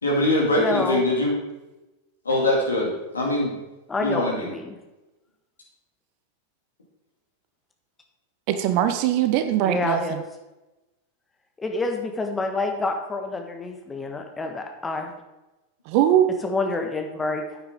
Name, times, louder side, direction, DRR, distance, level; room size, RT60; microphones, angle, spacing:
voice 1, 0.0-1.3 2.2-3.5 4.0-4.5, left 1 dB, 75° left, -2 dB, 2.5 m, -22 dB
voice 2, 0.6-1.0 3.9-4.8 9.6-10.2 11.6-15.1 16.4-17.6, left 3 dB, 15° left, 3 dB, 1.5 m, -28 dB
voice 3, 8.5-10.2 15.9-16.3, right 11 dB, 45° right, 9 dB, 0.8 m, -21 dB
10.0 x 8.8 x 3.8 m, 1.0 s
figure-of-eight pair, 90°, 0 cm